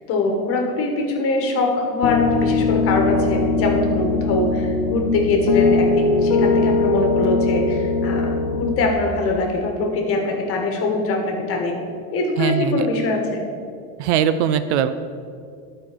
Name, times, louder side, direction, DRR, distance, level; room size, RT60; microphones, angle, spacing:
voice 1, 0.1-11.7 12.1-13.4, left 2 dB, 35° left, 2 dB, 1.5 m, -22 dB
Piano, 2.0-8.9, left 3 dB, 60° left, 1.0 m, -20 dB
voice 2, 12.4-12.9 14.0-14.9, right 9 dB, 60° right, 12 dB, 0.5 m, -20 dB
12.0 x 4.4 x 6.1 m, 2.3 s
supercardioid pair, 155°, 40 cm